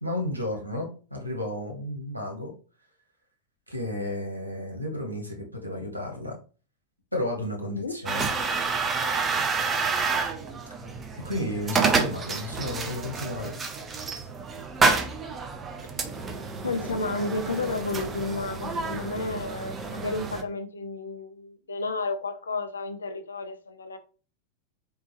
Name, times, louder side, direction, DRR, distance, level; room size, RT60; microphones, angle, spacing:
voice 1, 0.0-2.5 3.7-6.4 7.1-8.3 11.2-13.5, left 1 dB, 85° right, 1.4 m, -32 dB
voice 2, 7.6-8.0 16.6-24.0, left 3 dB, 70° left, 0.7 m, -32 dB
sound 1, 8.1-20.4, right 4 dB, 20° right, 0.8 m, -29 dB
4.4 x 3.7 x 3.1 m
figure-of-eight pair, 90°, 0 cm